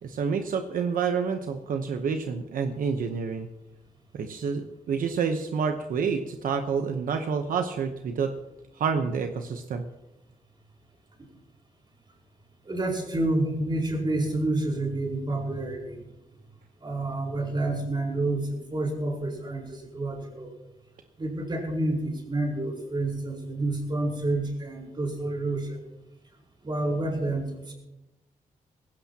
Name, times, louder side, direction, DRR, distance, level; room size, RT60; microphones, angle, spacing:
voice 1, 0.0-3.5 4.1-8.3 8.8-9.8, right 6 dB, 80° right, 6 dB, 1.0 m, -28 dB
voice 2, 12.6-16.0 16.8-20.5 21.2-25.8 26.6-27.7, right 2 dB, 35° right, 0 dB, 4.6 m, -29 dB
19.0 x 16.5 x 2.9 m, 0.94 s
cardioid pair, 105°, 14 cm